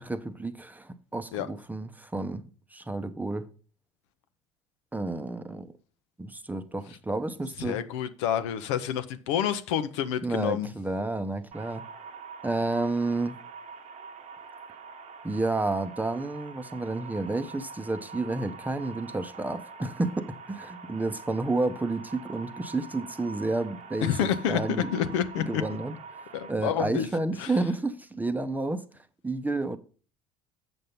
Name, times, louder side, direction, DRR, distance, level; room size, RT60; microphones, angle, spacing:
voice 1, 0.0-2.4 2.7-3.5 4.9-5.7 6.2-7.8 10.2-11.8 12.4-13.4 15.2-26.0 26.5-28.8 29.2-29.8, right 2 dB, 10° right, 0.8 m, -30 dB
voice 2, 7.6-10.7 24.0-25.6 26.3-27.1 27.4-27.5, left 9 dB, 65° left, 0.7 m, -28 dB
sound 1, 11.5-26.5, right 5 dB, 45° right, 1.0 m, -45 dB
7.7 x 6.5 x 5.5 m
figure-of-eight pair, 60°, 16 cm